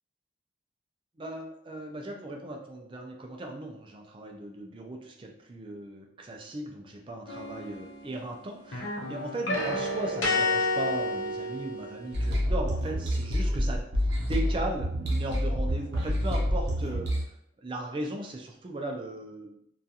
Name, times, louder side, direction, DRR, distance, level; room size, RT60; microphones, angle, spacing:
voice 1, 1.2-13.9 14.2-17.1 17.6-19.6, right 1 dB, 25° right, 1 dB, 0.3 m, -37 dB
sound 1, 7.3-8.3 8.6-12.2, left 2 dB, 90° left, 0.6 m, -30 dB
sound 2, 12.1-17.2, equal, 65° right, 0.6 m, -28 dB
2.3 x 2.3 x 2.7 m, 0.71 s
head